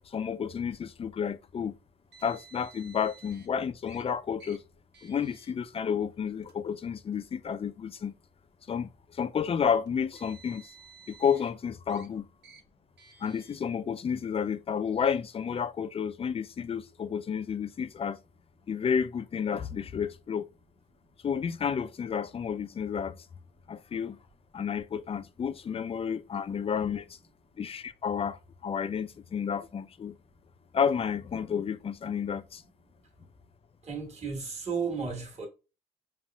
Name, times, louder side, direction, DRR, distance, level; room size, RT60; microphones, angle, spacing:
voice 1, 0.0-1.7 2.2-4.6 5.0-8.1 8.7-10.6 11.1-12.2 13.2-18.2 18.7-20.5 21.2-23.2 23.7-24.2 24.5-27.2 27.6-30.1 30.7-32.6, left 7 dB, 30° left, 0.3 m, -31 dB
Car, 2.1-3.5 3.9-4.0 4.4-4.6 4.9-5.5 6.3-6.5 7.5-7.6 9.9-11.5 11.9-12.1 12.4-12.6 13.0-13.6, right 5 dB, 60° right, 1.1 m, -54 dB
voice 2, 33.8-35.5, right 5 dB, 35° right, 1.4 m, -33 dB
5.4 x 2.4 x 2.3 m
cardioid pair, 90°, 20 cm